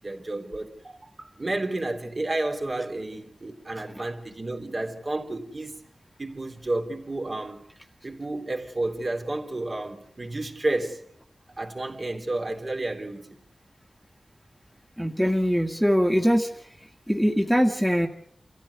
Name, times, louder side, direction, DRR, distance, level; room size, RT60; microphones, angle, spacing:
voice 1, 0.0-5.8 6.2-7.6 8.0-11.0 11.6-13.4, right 2 dB, 45° right, 3.3 m, -31 dB
voice 2, 15.0-16.5 17.1-18.1, equal, ahead, 1.9 m, -22 dB
28.0 x 14.5 x 8.3 m
wide cardioid pair, 70°, 0 cm